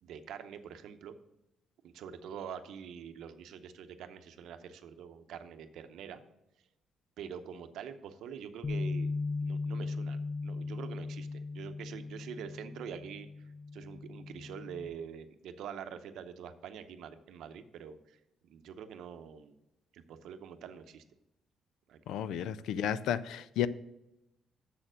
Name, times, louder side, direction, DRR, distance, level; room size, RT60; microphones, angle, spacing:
voice 1, 0.0-1.1 1.8-6.2 7.2-13.3 13.7-19.5 19.9-21.0 21.9-22.0, right 8 dB, 80° right, 9 dB, 0.7 m, -45 dB
Bass guitar, 8.6-14.9, left 3 dB, 40° left, 0.6 m, -38 dB
voice 2, 22.1-23.7, left 10 dB, 90° left, 16 dB, 0.4 m, -32 dB
7.2 x 6.6 x 6.2 m, 0.90 s
cardioid pair, 150°, 0 cm